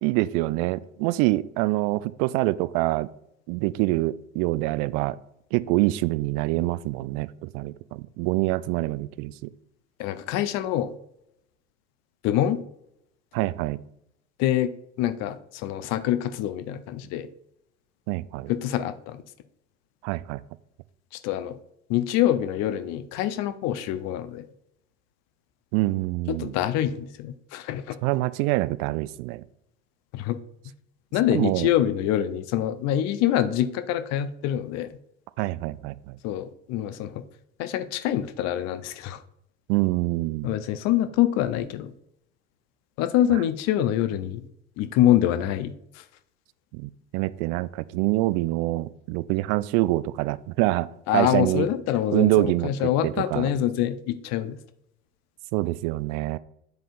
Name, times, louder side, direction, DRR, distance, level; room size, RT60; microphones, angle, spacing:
voice 1, 0.0-3.1 3.5-5.2 5.5-9.5 13.3-13.8 18.1-18.5 20.0-20.4 25.7-26.5 28.0-29.4 31.3-31.7 35.4-36.2 39.7-40.5 43.3-43.4 46.7-51.7 52.1-53.5 55.5-56.4, right 19 dB, 50° right, 17 dB, 0.4 m, -25 dB
voice 2, 10.0-10.9 12.2-12.6 14.4-14.7 15.0-17.3 18.5-19.2 21.2-21.6 21.9-24.5 26.3-28.0 30.1-30.4 31.1-34.9 36.2-37.2 37.6-39.2 40.4-41.9 43.0-44.5 44.8-46.0 51.1-54.6, left 12 dB, 45° left, 10 dB, 0.6 m, -25 dB
10.0 x 3.8 x 2.5 m, 0.76 s
figure-of-eight pair, 75°, 36 cm